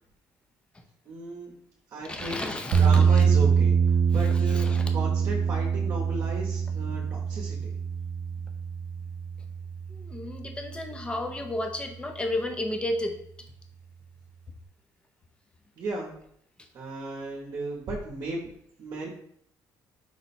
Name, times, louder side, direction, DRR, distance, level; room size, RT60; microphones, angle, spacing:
voice 1, 1.1-1.6 1.9-2.4 2.8-3.8 4.1-7.7 15.8-16.1 16.7-18.5 18.8-19.1, right 3 dB, 50° right, -2 dB, 0.8 m, -35 dB
voice 2, 2.0-3.3 4.1-4.9 9.9-13.2, left 1 dB, 15° left, 4 dB, 0.5 m, -33 dB
sound 1, 2.7-10.8, right 6 dB, 75° right, 0.4 m, -24 dB
4.7 x 2.1 x 4.1 m, 0.69 s
cardioid pair, 150°, 8 cm